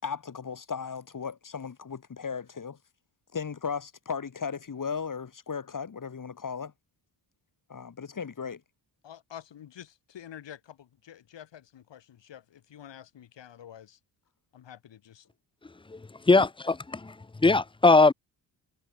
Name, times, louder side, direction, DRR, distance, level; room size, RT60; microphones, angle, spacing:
voice 1, 0.0-2.8 3.3-6.7 7.7-8.6, left 6 dB, 45° left, 3.7 m, -36 dB
voice 2, 9.0-14.0 14.5-15.3 16.3-16.5, left 10 dB, 70° left, 6.3 m, -48 dB
voice 3, 16.3-17.1 17.4-18.1, left 3 dB, 10° left, 0.6 m, -20 dB
supercardioid pair, 55°, 45 cm